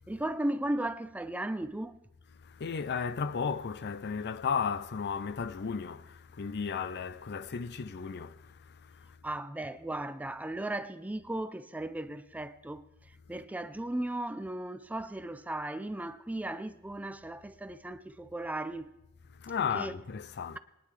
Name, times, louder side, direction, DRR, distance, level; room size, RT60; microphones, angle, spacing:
voice 1, 0.1-2.0 9.2-18.9 19.7-20.0, right 1 dB, 5° right, 0.4 m, -36 dB
voice 2, 2.4-9.2 19.3-20.6, left 6 dB, 50° left, 0.5 m, -35 dB
22.0 x 10.5 x 3.3 m
head